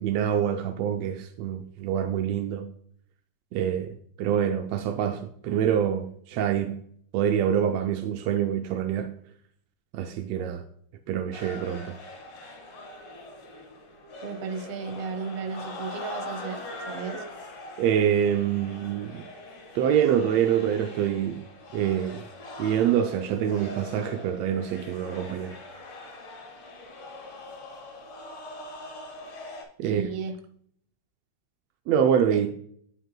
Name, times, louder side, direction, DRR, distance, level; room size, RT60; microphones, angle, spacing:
voice 1, 0.0-2.7 3.5-6.8 7.1-9.1 9.9-10.6 11.1-12.0 17.8-19.2 19.7-21.4 21.7-22.3 22.6-25.6 29.8-30.0 31.9-32.5, right 9 dB, 80° right, 1.5 m, -26 dB
sound 1, 11.3-29.6, left 2 dB, 60° left, 2.9 m, -42 dB
voice 2, 14.2-17.2 29.8-30.4 32.3-32.4, right 5 dB, 65° right, 1.7 m, -34 dB
9.1 x 7.7 x 2.2 m
omnidirectional pair, 3.5 m